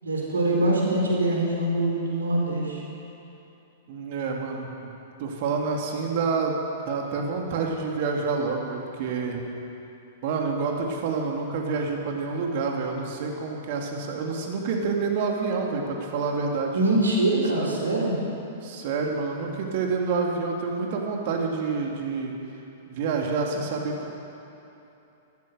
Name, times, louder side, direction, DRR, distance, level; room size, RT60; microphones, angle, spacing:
voice 1, 0.0-2.8 16.7-18.2, right 1 dB, 80° right, -2 dB, 3.9 m, -23 dB
voice 2, 3.9-4.9 5.2-6.6 6.9-9.4 10.2-16.8 17.5-17.8 18.6-22.3 22.9-24.1, right 4 dB, 50° right, 1 dB, 2.4 m, -28 dB
14.5 x 13.0 x 6.6 m, 3.0 s
figure-of-eight pair, 100°, 0 cm